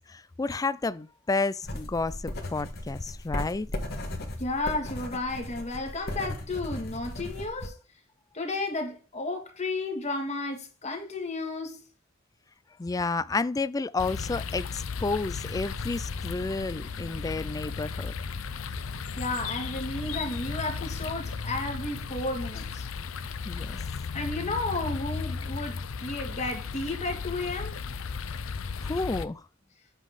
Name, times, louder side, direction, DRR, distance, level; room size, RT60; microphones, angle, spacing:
voice 1, 0.0-3.7 12.8-18.1 23.4-23.8 28.8-29.4, left 3 dB, 15° left, 0.3 m, -31 dB
sound 1, 1.6-7.7, left 1 dB, 50° left, 1.6 m, -36 dB
voice 2, 4.4-7.7 8.3-11.8 19.2-22.9 24.1-27.8, left 2 dB, 35° left, 1.9 m, -33 dB
sound 2, 14.0-29.3, left 5 dB, 90° left, 0.6 m, -35 dB
sound 3, 15.4-25.0, right 1 dB, 30° right, 1.6 m, -49 dB
8.2 x 4.0 x 5.2 m
head